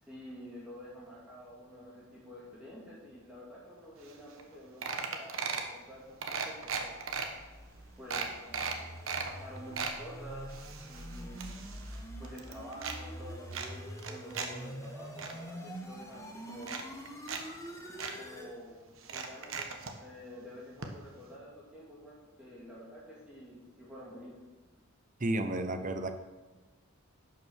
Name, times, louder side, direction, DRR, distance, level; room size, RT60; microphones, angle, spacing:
voice 1, 0.0-7.0 8.0-8.9 9.2-10.5 10.9-11.5 12.2-16.8 17.9-18.7 19.0-24.4, equal, 5° right, -7 dB, 2.5 m, -49 dB
sound 1, 4.1-4.2 4.4-4.5 4.8-5.7 6.2-7.3 7.7-7.8 8.1-9.3 9.6-10.0 10.5-12.0 12.2-13.0 13.5-14.5 14.8-15.3 16.1-16.2 16.6-17.4 17.7-17.8 18.0-18.1 19.0-19.9 20.8-20.9 21.2-21.3, right 5 dB, 70° right, 1.2 m, -37 dB
sound 2, 6.4-18.5, equal, 15° left, 1.3 m, -46 dB
voice 2, 25.2-26.1, right 1 dB, 40° right, 8 dB, 0.8 m, -32 dB
11.0 x 5.9 x 6.4 m, 1.2 s
head